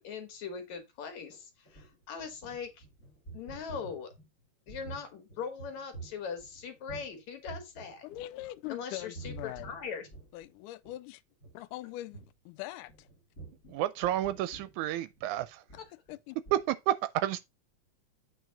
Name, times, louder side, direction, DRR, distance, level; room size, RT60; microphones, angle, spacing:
voice 1, 0.0-2.8 3.3-4.1 4.7-8.0 8.7-10.1, left 6 dB, 65° left, 2.6 m, -40 dB
sound 1, 1.3-7.2 7.4-8.7 9.0-10.5 10.8-11.0 11.3-11.5 12.1-12.3 12.9-16.2 16.5-16.6, right 4 dB, 30° left, 2.1 m, -49 dB
voice 2, 8.0-9.8 10.3-11.2 11.5-13.1 16.1-16.4, left 16 dB, 85° left, 2.1 m, -42 dB
voice 3, 13.7-15.6 16.5-17.4, right 13 dB, 80° right, 1.9 m, -30 dB
8.1 x 4.6 x 3.9 m
omnidirectional pair, 3.6 m